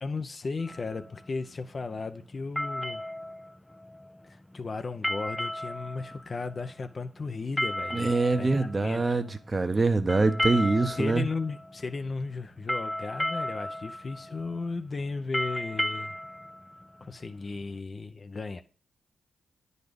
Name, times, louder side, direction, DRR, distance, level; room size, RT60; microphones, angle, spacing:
voice 1, 0.0-3.0 4.3-9.2 11.0-16.1 17.0-18.6, left 4 dB, 45° left, 0.7 m, -35 dB
sound 1, 0.6-17.8, equal, 10° left, 0.4 m, -35 dB
voice 2, 7.9-11.2, right 3 dB, 35° right, 0.9 m, -24 dB
9.4 x 4.1 x 5.2 m
supercardioid pair, 45°, 0 cm